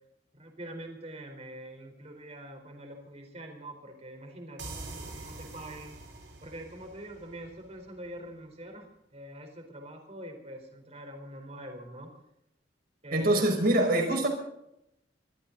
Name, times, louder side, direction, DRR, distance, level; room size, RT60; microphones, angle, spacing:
voice 1, 0.3-6.0 6.4-12.1 13.0-13.5, right 1 dB, 35° right, 4 dB, 4.0 m, -44 dB
sound 1, 4.6-8.1, right 2 dB, 85° right, 4.2 m, -45 dB
voice 2, 13.1-14.3, right 1 dB, 55° right, 3 dB, 5.2 m, -24 dB
23.0 x 14.5 x 3.9 m, 0.80 s
head